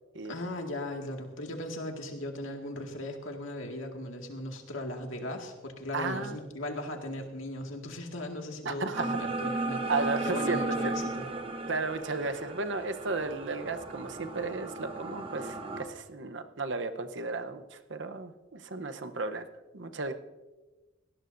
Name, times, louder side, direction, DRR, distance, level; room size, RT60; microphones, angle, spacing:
voice 1, 0.3-9.8 10.2-11.3, left 1 dB, 90° left, 2 dB, 2.0 m, -37 dB
voice 2, 5.9-6.4 8.6-9.2 9.9-10.6 10.8-11.0 11.7-19.4 19.7-20.1, right 3 dB, 70° right, 8 dB, 0.9 m, -34 dB
sound 1, 8.9-15.8, right 2 dB, 25° right, 1.0 m, -35 dB
19.0 x 17.0 x 2.6 m, 1.2 s
head